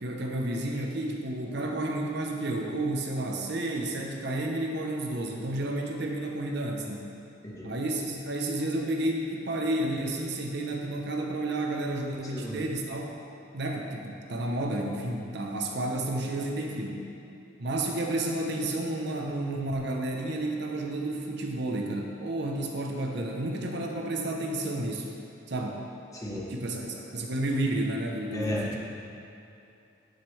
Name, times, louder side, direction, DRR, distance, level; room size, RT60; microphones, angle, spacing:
voice 1, 0.0-7.1 7.6-13.2 13.5-17.1 17.6-25.1 25.5-25.9 26.5-28.8, right 1 dB, 60° right, 1 dB, 0.8 m, -31 dB
voice 2, 26.1-26.5 28.3-28.7, left 1 dB, 15° left, -4 dB, 1.2 m, -33 dB
11.5 x 6.7 x 3.2 m, 2.7 s
head